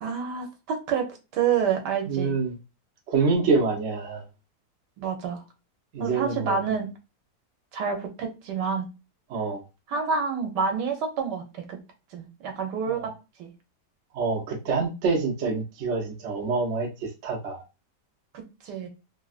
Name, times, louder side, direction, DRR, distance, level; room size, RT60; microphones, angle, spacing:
voice 1, 0.0-2.3 5.0-5.4 6.0-6.9 7.7-8.9 9.9-11.8 12.1-13.5 18.3-18.9, right 6 dB, 75° right, 1.3 m, -28 dB
voice 2, 2.1-2.5 3.1-4.2 5.9-6.6 9.3-9.6 14.1-17.6, right 4 dB, 55° right, 0.9 m, -26 dB
3.4 x 2.3 x 2.4 m
omnidirectional pair, 1.8 m